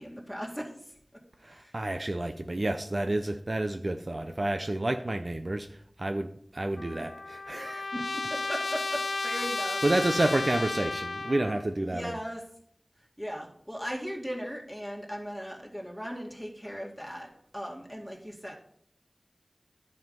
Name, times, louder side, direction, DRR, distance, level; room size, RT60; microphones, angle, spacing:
voice 1, 0.0-1.7 7.9-9.8 11.9-12.4 13.0-18.5, equal, 5° right, -1 dB, 2.2 m, -38 dB
voice 2, 1.4-7.9 9.8-12.1, right 1 dB, 50° right, 6 dB, 0.6 m, -30 dB
Trumpet, 6.8-11.7, left 3 dB, 85° left, 0.5 m, -33 dB
10.5 x 5.6 x 5.2 m, 0.65 s
wide cardioid pair, 55°, 0 cm